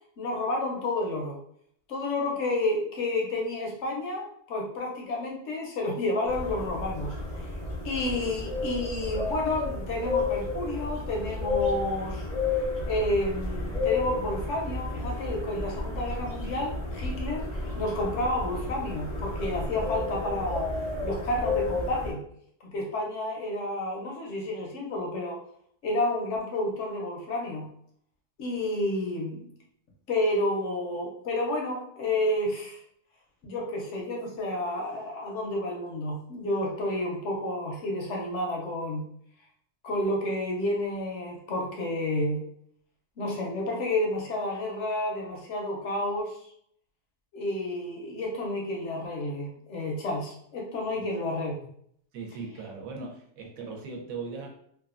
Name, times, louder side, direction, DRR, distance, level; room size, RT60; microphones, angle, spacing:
voice 1, 0.2-1.4 1.9-7.2 7.8-12.3 12.8-20.7 21.0-22.2 22.7-25.4 25.8-27.7 28.4-29.5 30.1-32.8 33.4-39.1 39.8-42.4 43.2-46.4 47.3-51.5, left 1 dB, 65° left, -1 dB, 0.7 m, -30 dB
sound 1, 6.3-22.1, left 3 dB, 85° left, 0.3 m, -32 dB
voice 2, 52.1-54.5, right 4 dB, 70° right, 0 dB, 1.0 m, -38 dB
2.7 x 2.2 x 2.4 m, 0.66 s
omnidirectional pair, 1.6 m